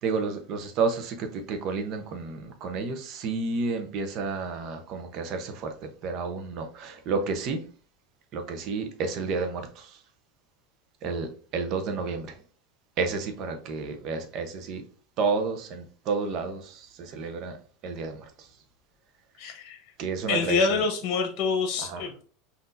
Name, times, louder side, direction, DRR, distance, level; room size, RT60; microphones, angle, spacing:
voice 1, 0.0-5.7 6.0-7.6 8.3-10.0 11.0-12.4 13.0-14.8 15.2-17.6 17.8-18.5 20.0-20.8 21.8-22.0, right 4 dB, 50° right, 6 dB, 0.9 m, -31 dB
voice 2, 19.4-19.8 20.3-22.2, left 4 dB, 50° left, 4 dB, 1.1 m, -26 dB
5.5 x 2.8 x 2.6 m, 0.42 s
hypercardioid pair, 95°, 0 cm